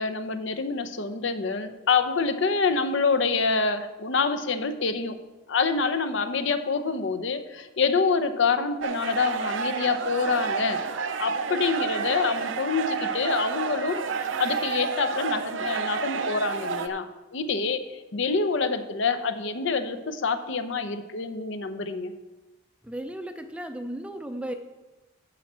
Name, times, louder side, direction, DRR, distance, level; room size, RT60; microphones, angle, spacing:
voice 1, 0.0-5.2 5.5-10.8 11.2-14.1 14.4-22.1, left 4 dB, 60° left, 10 dB, 0.6 m, -26 dB
sound 1, 8.8-16.9, right 5 dB, 65° right, 0.6 m, -30 dB
voice 2, 22.8-24.5, right 1 dB, 5° right, 7 dB, 0.5 m, -35 dB
11.5 x 4.4 x 7.3 m, 1.2 s
head